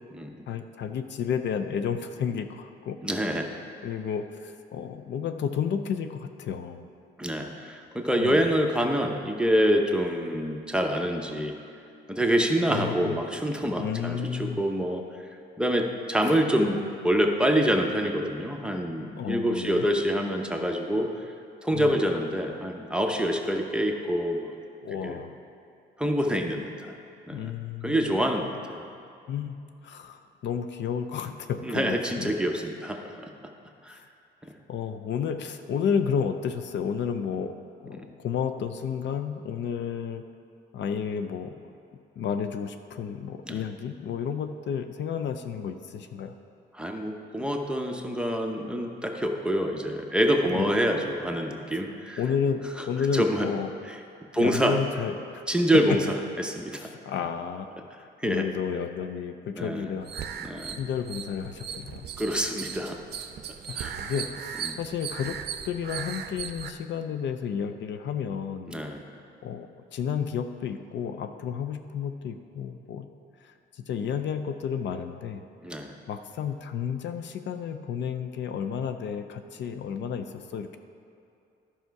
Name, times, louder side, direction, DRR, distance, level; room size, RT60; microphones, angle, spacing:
voice 1, 0.5-3.0 3.8-6.9 8.2-8.5 12.7-13.2 13.8-14.6 19.2-19.9 21.7-21.9 24.8-25.3 27.3-28.1 29.3-32.3 34.7-37.5 37.8-40.2 40.7-41.5 42.2-46.3 50.5-50.7 52.2-52.6 52.9-53.7 54.4-55.4 56.8-60.1 60.8-62.1 63.7-65.4 65.6-68.8 69.1-73.1 73.4-75.4 76.1-80.8, left 7 dB, 65° left, 8 dB, 0.5 m, -32 dB
voice 2, 3.0-3.5 7.2-11.5 12.1-15.0 15.6-21.1 21.6-24.5 25.0-25.2 26.0-26.9 27.3-27.5 27.8-28.9 31.6-33.1 33.8-34.0 37.9-38.1 43.5-43.6 46.8-52.2 53.1-53.5 53.9-54.0 54.3-54.8 55.5-56.0 56.4-56.9 58.2-58.4 59.5-59.9 60.4-60.8 62.2-63.0 63.7-63.9 64.7-64.8 68.7-69.0 75.6-75.9, equal, 5° right, 2 dB, 0.8 m, -26 dB
sound 1, 60.0-66.7, right 8 dB, 55° right, 0.6 m, -37 dB
11.5 x 5.7 x 4.6 m, 2.6 s
cardioid pair, 90°, 20 cm